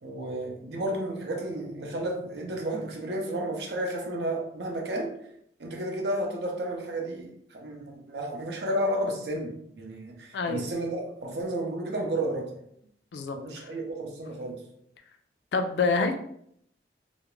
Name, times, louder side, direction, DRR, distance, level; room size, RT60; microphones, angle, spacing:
voice 1, 0.0-5.1 5.6-12.6 13.3-14.6, right 1 dB, 70° right, 1 dB, 0.6 m, -32 dB
voice 2, 10.3-10.6 13.1-13.4 15.5-16.2, left 4 dB, 80° left, 7 dB, 0.3 m, -26 dB
2.4 x 2.0 x 3.0 m, 0.70 s
head